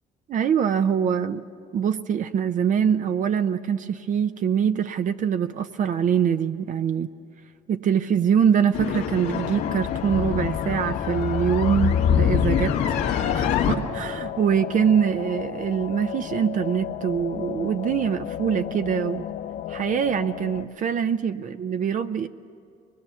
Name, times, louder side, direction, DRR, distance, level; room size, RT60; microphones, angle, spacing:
voice 1, 0.3-1.4 1.7-7.1 7.7-12.7 13.2-19.2 19.7-22.3, right 8 dB, 50° right, 10 dB, 0.6 m, -24 dB
sound 1, 8.7-13.7, left 8 dB, 85° left, 1.7 m, -24 dB
sound 2, 9.3-20.6, left 11 dB, 60° left, 0.6 m, -34 dB
23.5 x 21.5 x 7.0 m, 2.5 s
cardioid pair, 110°, 17 cm